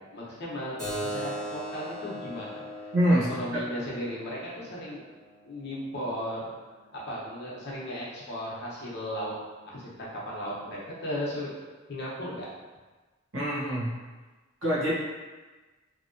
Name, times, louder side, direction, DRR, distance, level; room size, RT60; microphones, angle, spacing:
voice 1, 0.1-5.0 5.4-6.4 6.9-9.3 9.6-11.5 11.9-12.5, equal, 55° left, -6 dB, 0.9 m, -36 dB
Keyboard (musical), 0.8-5.9, equal, 5° left, 1.3 m, -39 dB
voice 2, 2.9-3.6 13.3-13.9 14.6-14.9, equal, 70° right, -6 dB, 1.0 m, -25 dB
2.9 x 2.8 x 2.6 m, 1.3 s
head